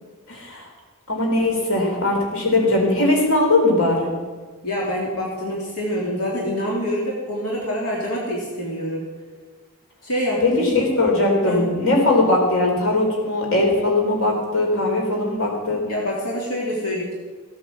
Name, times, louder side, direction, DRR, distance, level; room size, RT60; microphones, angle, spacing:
voice 1, 0.3-0.6 1.1-4.1 10.4-15.8, left 2 dB, 65° left, 0 dB, 4.2 m, -20 dB
voice 2, 4.6-9.1 10.0-10.7 11.4-11.6 15.7-17.1, equal, 85° left, -4 dB, 3.2 m, -26 dB
16.5 x 8.6 x 7.5 m, 1.4 s
head